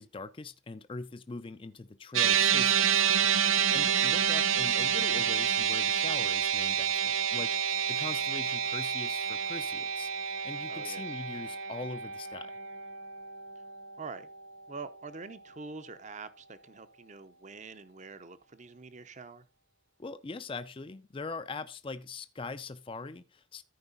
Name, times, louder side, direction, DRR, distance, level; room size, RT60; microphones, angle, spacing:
voice 1, 0.0-3.0 3.7-12.6 20.0-23.6, left 3 dB, 25° left, 0.4 m, -42 dB
sound 1, 2.1-14.6, right 8 dB, 85° right, 0.7 m, -29 dB
voice 2, 10.7-11.0 14.0-14.3 14.7-19.4, right 4 dB, 35° right, 0.7 m, -45 dB
13.5 x 4.9 x 3.9 m
head